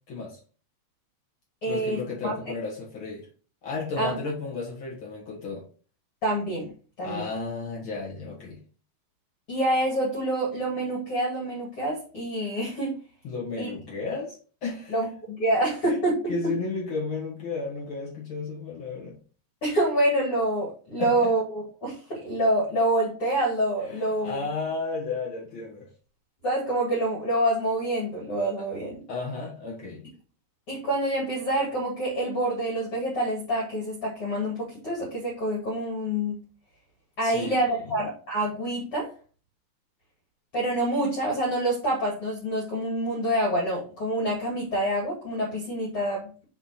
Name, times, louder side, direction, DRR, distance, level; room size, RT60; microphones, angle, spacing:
voice 1, 0.1-0.4 1.7-3.3 3.6-5.6 7.0-8.6 13.2-15.0 15.8-16.0 16.3-19.2 21.0-21.3 23.8-25.9 29.1-30.1 37.2-37.6, left 4 dB, 90° left, 1.1 m, -33 dB
voice 2, 1.6-2.3 4.0-4.2 6.2-6.7 7.0-7.2 9.5-12.9 13.6-13.7 14.9-16.3 19.6-24.4 26.4-29.0 30.7-36.4 37.2-39.1 40.5-46.3, right 1 dB, 45° left, 2.1 m, -27 dB
6.0 x 4.5 x 4.2 m
omnidirectional pair, 5.2 m